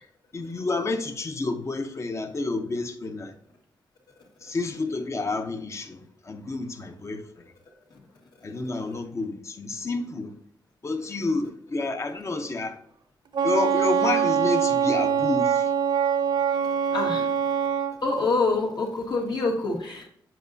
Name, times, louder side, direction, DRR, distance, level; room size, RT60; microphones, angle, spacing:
voice 1, 0.3-3.3 4.4-7.2 8.4-10.3 10.8-12.8 13.4-15.6 17.1-17.3, left 3 dB, 35° left, 0.8 m, -29 dB
Wind instrument woodwind instrument, 13.3-17.9, right 8 dB, 65° right, 0.7 m, -23 dB
voice 2, 16.9-17.2 18.0-20.1, left 3 dB, 60° left, 1.7 m, -26 dB
7.6 x 5.1 x 2.7 m
wide cardioid pair, 110°, 8 cm